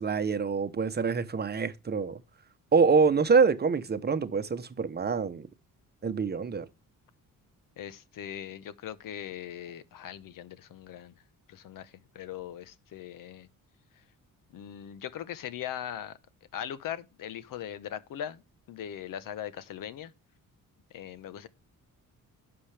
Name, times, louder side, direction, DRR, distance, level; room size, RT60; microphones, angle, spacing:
voice 1, 0.0-2.2 2.7-5.5 6.0-6.7, right 5 dB, 30° right, 0.9 m, -25 dB
voice 2, 7.8-11.1 11.5-13.5 14.5-16.2 16.5-18.4 18.7-20.1 20.9-21.5, left 10 dB, 75° left, 1.1 m, -40 dB
11.5 x 6.9 x 3.4 m
cardioid pair, 135°, 33 cm